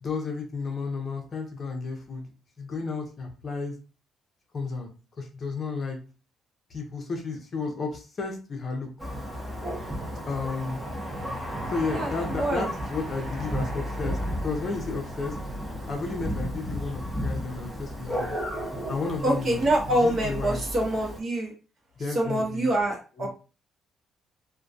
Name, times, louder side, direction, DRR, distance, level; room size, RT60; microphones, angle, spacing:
voice 1, 0.0-2.3 2.6-3.7 4.5-4.9 5.2-6.0 6.7-8.9 10.3-10.8 11.7-15.3 15.9-18.3 18.9-19.6 19.9-20.6 22.0-22.7 23.2-23.3, left 4 dB, 35° left, 2 dB, 0.6 m, -32 dB
Thunder, 9.0-21.2, equal, 5° right, 0.7 m, -33 dB
voice 2, 11.9-12.7 19.2-21.5 22.1-23.3, right 1 dB, 40° right, -1 dB, 0.9 m, -25 dB
2.2 x 2.2 x 2.6 m, 0.34 s
cardioid pair, 130°, 0 cm